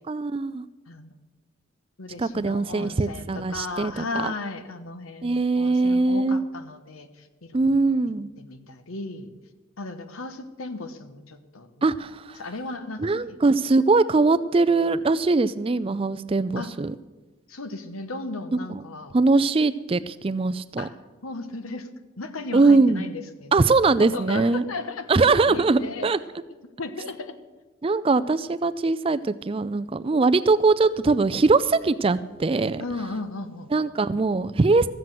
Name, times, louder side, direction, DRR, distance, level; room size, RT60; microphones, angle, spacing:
voice 1, 0.1-0.7 2.2-4.3 5.2-6.4 7.5-8.3 11.8-12.4 13.0-16.9 18.7-18.8 19.1-20.9 22.5-23.1 23.5-24.6 25.1-26.2 27.8-32.8 33.7-34.9, right 3 dB, 25° right, 13 dB, 0.4 m, -21 dB
voice 2, 2.0-7.9 8.4-9.3 9.8-11.9 12.4-13.4 16.6-16.8 17.5-19.1 20.8-21.0 21.2-21.9 22.2-23.7 24.0-26.1 26.8-27.4 32.8-33.7, left 3 dB, 90° left, 10 dB, 1.2 m, -36 dB
14.5 x 7.8 x 7.6 m, 1.2 s
head